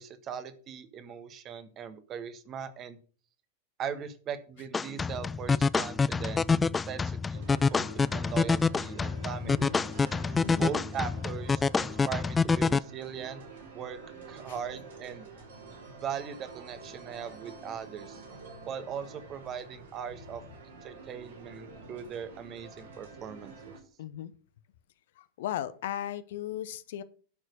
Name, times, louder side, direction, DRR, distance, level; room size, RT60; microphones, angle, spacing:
voice 1, 0.0-3.0 3.8-9.7 10.6-13.4 13.7-14.0 14.3-15.3 16.0-18.2 18.7-20.4 20.8-23.7, right 8 dB, 30° right, 10 dB, 1.5 m, -39 dB
sound 1, 4.7-12.8, left 4 dB, 15° left, 0.4 m, -27 dB
sound 2, 7.3-23.8, right 4 dB, 65° right, 4.5 m, -48 dB
voice 2, 9.4-9.8 10.4-10.7 24.0-24.3 25.2-27.0, left 11 dB, 55° left, 14 dB, 0.9 m, -36 dB
11.0 x 6.4 x 6.6 m, 0.41 s
figure-of-eight pair, 90°, 0 cm